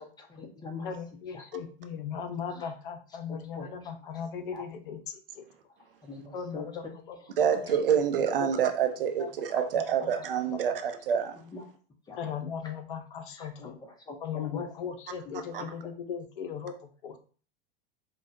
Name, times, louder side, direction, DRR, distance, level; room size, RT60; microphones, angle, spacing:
voice 1, 0.2-0.9 3.6-3.7 4.5-4.6 6.0-6.7 9.5-9.6 11.5-11.6 12.1-12.3 13.4-13.7 14.1-14.7, left 4 dB, 15° left, 2 dB, 0.8 m, -42 dB
voice 2, 0.8-5.4 6.3-7.6 9.2-9.3 9.6-10.7 12.2-13.8 14.2-17.2, left 7 dB, 55° left, 7 dB, 0.7 m, -38 dB
voice 3, 7.4-11.3 15.5-15.6, right 8 dB, 65° right, 7 dB, 0.7 m, -27 dB
5.1 x 2.3 x 2.6 m, 0.40 s
figure-of-eight pair, 95°, 30 cm